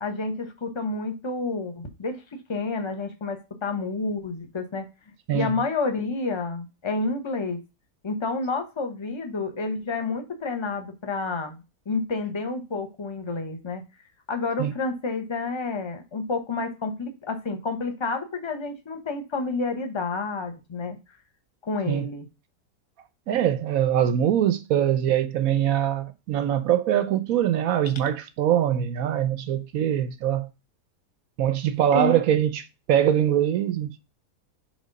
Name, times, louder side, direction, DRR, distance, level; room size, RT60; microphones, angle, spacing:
voice 1, 0.0-4.9 5.3-7.6 8.0-13.8 14.3-21.0 21.6-22.3 31.9-32.1, left 3 dB, 20° left, 0.8 m, -29 dB
voice 2, 23.3-30.5 31.4-32.6 32.9-34.0, right 10 dB, 65° right, 1.0 m, -23 dB
5.2 x 3.9 x 5.2 m
omnidirectional pair, 1.8 m